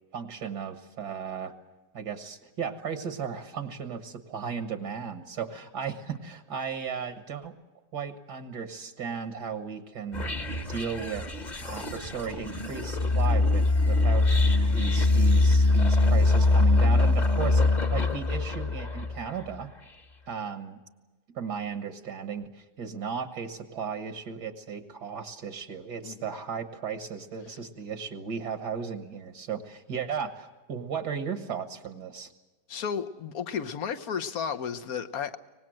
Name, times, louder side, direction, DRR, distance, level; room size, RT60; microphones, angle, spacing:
voice 1, 0.1-1.5 1.9-7.5 7.9-11.3 11.6-14.4 14.7-19.7 20.3-20.8 21.3-32.3, right 6 dB, 70° right, 2.0 m, -35 dB
sound 1, 10.1-19.3, left 2 dB, 25° left, 1.4 m, -23 dB
voice 2, 32.7-35.4, left 7 dB, 60° left, 1.4 m, -33 dB
24.5 x 19.5 x 7.7 m
omnidirectional pair, 1.8 m